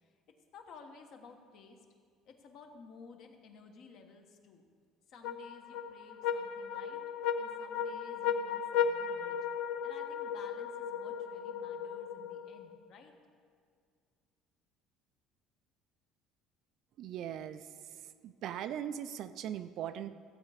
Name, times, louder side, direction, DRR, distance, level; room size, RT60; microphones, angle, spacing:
voice 1, 0.5-1.8 2.2-4.6 5.1-7.0 7.4-9.4 9.8-13.1, left 4 dB, 45° left, 4 dB, 1.2 m, -54 dB
sound 1, 5.2-12.8, left 7 dB, 65° left, 0.6 m, -36 dB
voice 2, 17.0-17.6 18.2-20.2, right 10 dB, 45° right, 11 dB, 0.4 m, -39 dB
15.5 x 8.3 x 5.0 m, 2.1 s
cardioid pair, 180°, 0 cm